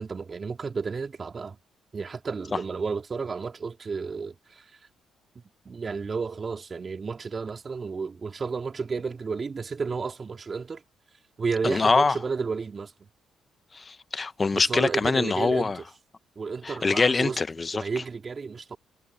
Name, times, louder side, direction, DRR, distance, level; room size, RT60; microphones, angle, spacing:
voice 1, 0.0-1.6 1.9-4.7 5.7-10.8 11.4-12.9 14.5-15.9 16.4-17.4 17.7-18.8, right 5 dB, 35° right, 3.6 m, -32 dB
voice 2, 11.6-12.2 13.7-15.8 16.6-17.8, left 4 dB, 30° left, 0.9 m, -24 dB
cardioid pair, 90°, 0 cm